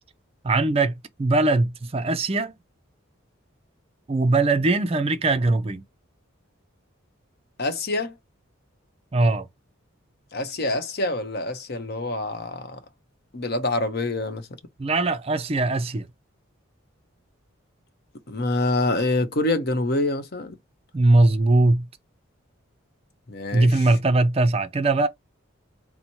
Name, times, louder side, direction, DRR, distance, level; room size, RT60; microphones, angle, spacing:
voice 1, 0.4-0.9 1.2-2.5 4.1-5.8 9.1-9.5 14.8-16.1 20.9-21.9 23.5-25.1, right 2 dB, 30° right, 0.4 m, -20 dB
voice 2, 7.6-8.1 10.3-12.8 13.3-14.5 18.3-20.6 23.3-23.9, left 2 dB, 50° left, 0.8 m, -26 dB
4.1 x 2.1 x 4.5 m
head